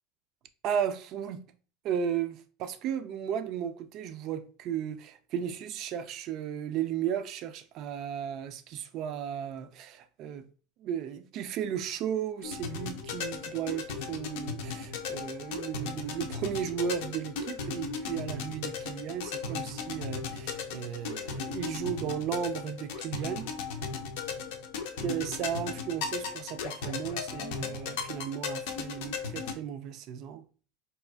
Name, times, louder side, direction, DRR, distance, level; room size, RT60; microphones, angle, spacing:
voice 1, 0.6-1.4 1.8-10.5 10.8-23.5 25.0-30.4, right 8 dB, 50° right, 0.4 m, -35 dB
sound 1, 12.4-29.5, left 5 dB, 70° left, 0.5 m, -36 dB
4.1 x 2.3 x 2.3 m
hypercardioid pair, 90°, 0 cm